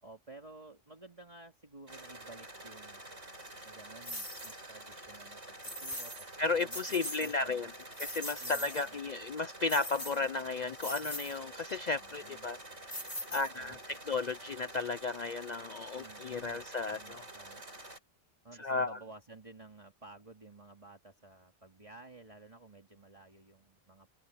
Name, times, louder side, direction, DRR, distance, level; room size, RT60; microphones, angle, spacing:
voice 1, 0.0-7.8 8.4-9.0 11.9-12.5 13.3-13.8 15.9-16.6 16.9-17.6 18.4-24.1, right 2 dB, 30° right, 2.5 m, -54 dB
sound 1, 1.9-18.0, right 1 dB, 80° right, 5.6 m, -49 dB
sound 2, 4.0-4.6 5.6-6.3 6.6-7.3 7.7-8.9 9.7-10.4 10.8-11.4 12.9-13.8, equal, 15° left, 3.5 m, -41 dB
voice 2, 6.4-7.7 8.0-17.2 18.6-19.0, left 3 dB, 50° left, 0.6 m, -34 dB
open air
omnidirectional pair, 1.2 m